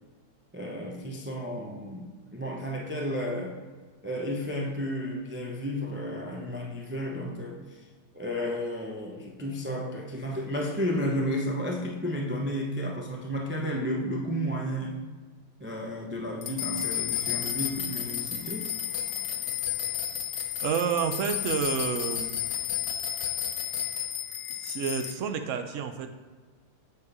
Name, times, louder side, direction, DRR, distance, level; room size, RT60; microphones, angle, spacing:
voice 1, 0.5-3.6 4.0-7.9 8.1-14.9 15.6-18.7, equal, 15° right, -1 dB, 0.4 m, -32 dB
sound 1, 16.4-25.1, left 10 dB, 65° left, 1.3 m, -32 dB
voice 2, 20.6-22.3 24.6-26.1, right 7 dB, 70° right, 7 dB, 0.7 m, -29 dB
8.3 x 4.6 x 4.8 m, 1.4 s
omnidirectional pair, 2.0 m